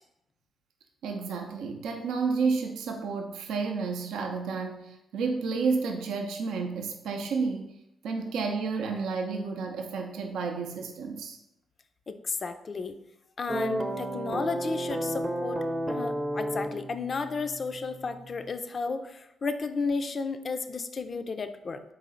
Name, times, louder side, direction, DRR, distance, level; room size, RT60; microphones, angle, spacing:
voice 1, 1.0-7.7 8.0-11.4, right 4 dB, 80° right, 2 dB, 0.5 m, -31 dB
voice 2, 12.1-13.0 13.4-21.8, left 4 dB, 50° left, 9 dB, 0.4 m, -33 dB
sound 1, 13.5-18.5, right 1 dB, 20° right, 0.5 m, -33 dB
4.0 x 3.1 x 3.8 m, 0.85 s
supercardioid pair, 55°, 0 cm